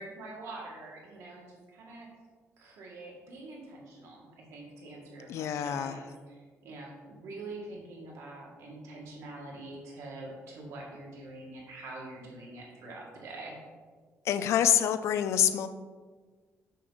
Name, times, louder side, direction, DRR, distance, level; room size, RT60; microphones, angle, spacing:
voice 1, 0.0-2.1 2.6-6.1 6.6-13.6, right 2 dB, 85° right, -1 dB, 1.8 m, -45 dB
voice 2, 5.3-6.0 14.2-15.7, left 10 dB, 75° left, 11 dB, 0.4 m, -26 dB
6.5 x 5.9 x 4.0 m, 1.4 s
cardioid pair, 145°, 5 cm